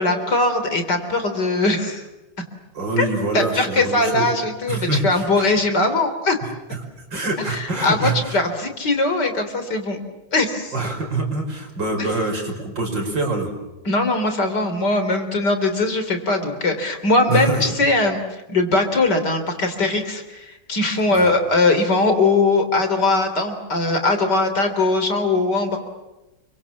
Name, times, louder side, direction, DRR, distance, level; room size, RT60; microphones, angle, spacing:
voice 1, 0.0-2.1 3.0-3.1 3.3-6.4 7.5-10.0 10.3-10.7 12.0-12.2 13.8-25.8, left 2 dB, 50° left, 7 dB, 4.0 m, -20 dB
voice 2, 2.7-4.3 4.7-5.5 7.1-8.4 10.7-13.5 17.3-17.6 21.1-21.3, right 2 dB, 60° right, 3 dB, 6.1 m, -25 dB
30.0 x 24.5 x 7.3 m, 1.0 s
omnidirectional pair, 2.3 m